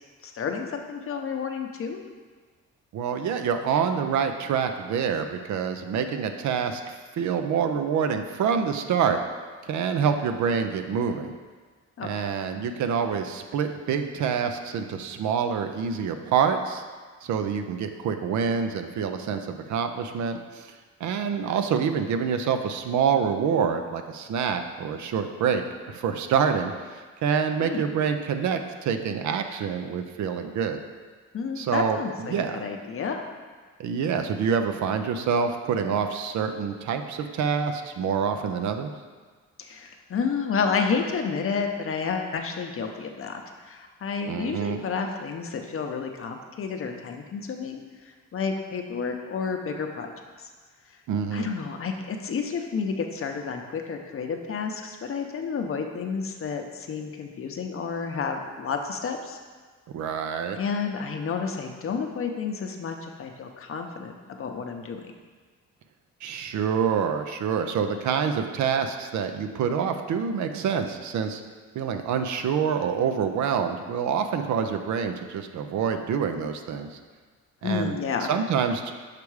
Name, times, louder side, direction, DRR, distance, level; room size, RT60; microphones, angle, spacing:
voice 1, 0.2-2.0 12.0-12.2 27.6-27.9 31.3-33.3 39.6-47.8 48.3-50.5 51.3-59.4 60.6-65.0 77.6-78.3, left 5 dB, 45° left, 4 dB, 0.7 m, -30 dB
voice 2, 2.9-9.2 9.6-11.3 12.0-16.8 17.2-20.7 21.0-30.8 31.6-32.0 32.3-32.6 33.8-38.9 44.3-44.8 51.1-51.5 59.9-60.6 66.2-71.4 71.7-77.0 77.6-78.0 78.3-78.9, right 7 dB, 70° right, 7 dB, 0.6 m, -26 dB
6.7 x 3.5 x 4.7 m, 1.5 s
cardioid pair, 90°, 30 cm